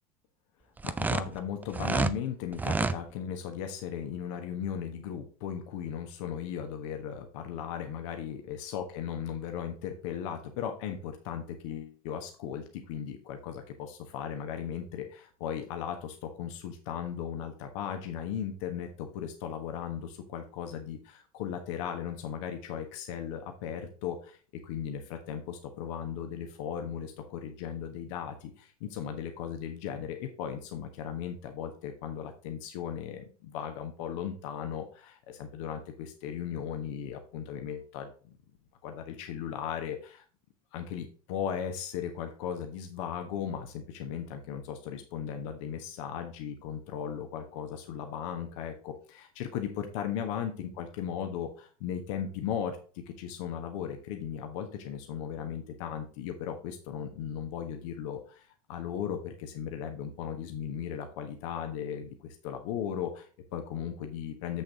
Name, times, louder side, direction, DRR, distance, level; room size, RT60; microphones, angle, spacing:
voice 1, 0.8-24.4 24.6-38.4 38.8-40.2 40.7-52.8 53.1-58.4 58.7-64.6, left 8 dB, 55° left, 5 dB, 1.3 m, -37 dB
sound 1, 0.8-2.2 2.5-3.0, right 4 dB, 10° right, 0.4 m, -28 dB
7.8 x 6.9 x 3.6 m, 0.39 s
figure-of-eight pair, 75°, 19 cm